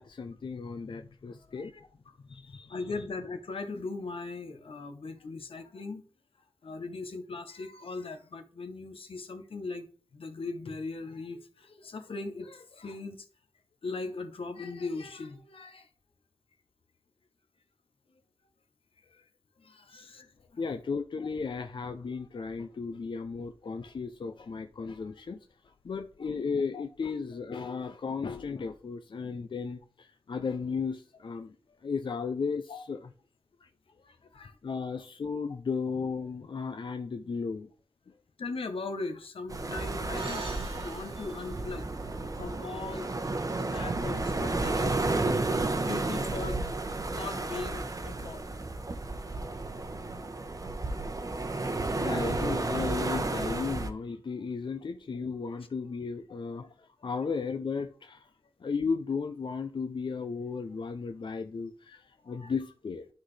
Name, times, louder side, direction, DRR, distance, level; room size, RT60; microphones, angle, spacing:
voice 1, 0.0-1.7 2.2-2.8 20.6-25.4 25.8-31.6 31.8-33.1 33.6-33.7 34.6-37.7 52.0-58.3 58.6-63.1, left 5 dB, 60° left, 0.5 m, -35 dB
voice 2, 1.5-2.2 2.7-6.0 6.6-9.9 10.1-13.3 13.8-15.9 19.0-19.2 19.6-20.6 26.7-26.8 32.7-32.8 34.0-34.6 38.4-45.4 45.8-46.8 47.1-48.5 52.7-52.8 56.3-56.4 61.9-62.5, left 3 dB, 85° left, 1.0 m, -40 dB
sound 1, 39.5-53.9, right 2 dB, 40° right, 0.9 m, -32 dB
sound 2, 40.2-44.8, right 4 dB, 85° right, 1.5 m, -46 dB
11.5 x 4.0 x 3.2 m
wide cardioid pair, 85°, 9 cm